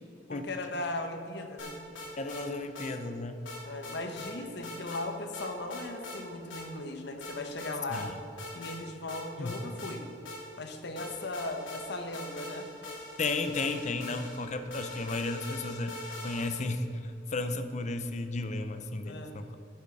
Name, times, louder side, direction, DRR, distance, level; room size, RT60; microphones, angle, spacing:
voice 1, 0.3-1.8 3.6-8.1 8.5-10.0 10.6-12.7 19.0-19.3, left 2 dB, 60° left, 5 dB, 1.2 m, -37 dB
sound 1, 1.6-2.4 2.8-2.9 3.5-4.3 4.6-5.0 5.3-6.2 6.5-6.6 7.2-8.1 8.4-8.8 9.1-10.6 11.0-16.7, left 1 dB, 85° left, 3.0 m, -42 dB
voice 2, 2.2-3.4 7.9-8.2 9.4-9.5 13.2-15.9 16.2-19.6, left 3 dB, 40° left, 9 dB, 0.6 m, -34 dB
11.0 x 9.3 x 4.8 m, 2.7 s
head